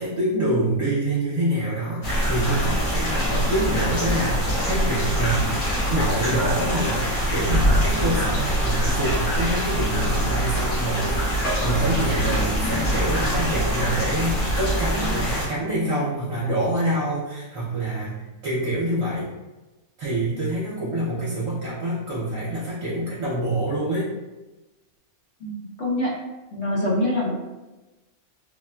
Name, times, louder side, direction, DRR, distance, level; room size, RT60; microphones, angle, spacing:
voice 1, 0.0-5.5 5.9-7.0 7.3-19.3 20.0-24.1, right 1 dB, 70° right, -9 dB, 1.2 m, -26 dB
sound 1, 2.0-15.5, equal, 75° left, 1.5 m, -24 dB
voice 2, 25.4-26.2 26.5-27.4, left 1 dB, 55° left, -5 dB, 0.8 m, -25 dB
3.9 x 2.3 x 2.2 m, 1.1 s
omnidirectional pair, 1.5 m